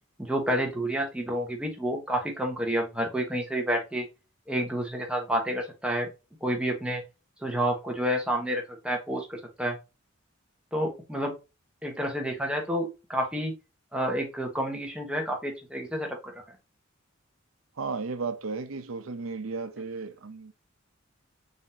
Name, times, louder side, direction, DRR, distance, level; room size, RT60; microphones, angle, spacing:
voice 1, 0.2-4.1 4.5-6.1 6.4-7.0 7.4-9.8 10.7-11.3 11.8-13.5 13.9-16.4, equal, 5° right, 1.1 m, -29 dB
voice 2, 17.8-20.5, right 4 dB, 90° right, 0.7 m, -34 dB
4.1 x 3.5 x 2.7 m
head